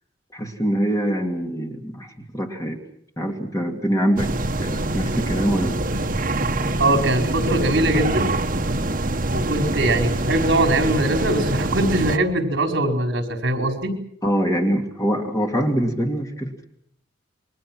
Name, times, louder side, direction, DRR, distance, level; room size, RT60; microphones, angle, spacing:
voice 1, 0.3-2.8 3.2-4.3 4.6-5.8 14.2-16.6, equal, 15° left, 2 dB, 2.7 m, -24 dB
sound 1, 4.2-12.2, right 2 dB, 45° right, 1.5 m, -24 dB
voice 2, 6.8-8.3 9.3-13.9, right 1 dB, 65° right, 3 dB, 4.9 m, -21 dB
29.0 x 23.5 x 6.2 m, 0.71 s
head